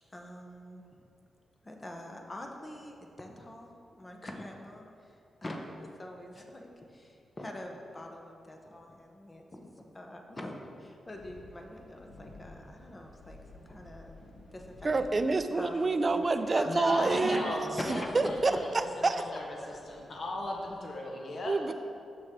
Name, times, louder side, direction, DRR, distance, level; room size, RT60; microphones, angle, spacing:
voice 1, 0.1-0.9 1.6-14.2 14.5-15.1 15.5-15.8 16.5-17.4 17.8-18.3 18.7-19.8, left 1 dB, 25° left, 2 dB, 0.8 m, -43 dB
sound 1, 11.1-20.8, left 1 dB, 80° left, 1.1 m, -54 dB
voice 2, 14.8-17.5 18.1-19.1 21.5-21.7, right 3 dB, 40° right, 10 dB, 0.3 m, -27 dB
voice 3, 16.7-18.7 19.1-19.6 19.9-21.7, left 1 dB, 55° left, 0 dB, 1.0 m, -37 dB
6.2 x 6.0 x 3.6 m, 2.5 s
cardioid pair, 75°, 0 cm